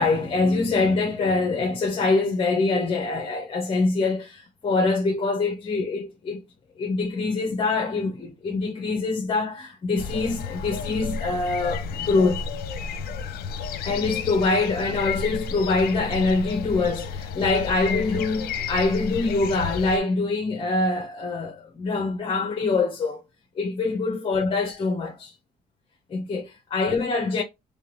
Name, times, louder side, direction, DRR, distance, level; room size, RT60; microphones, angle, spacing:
voice 1, 0.0-6.4 6.8-12.4 13.8-23.2 23.5-25.3 26.1-27.4, left 3 dB, 30° left, 1.1 m, -24 dB
sound 1, 10.0-20.0, left 5 dB, 65° left, 0.8 m, -32 dB
3.6 x 3.5 x 3.1 m
cardioid pair, 110°, 17 cm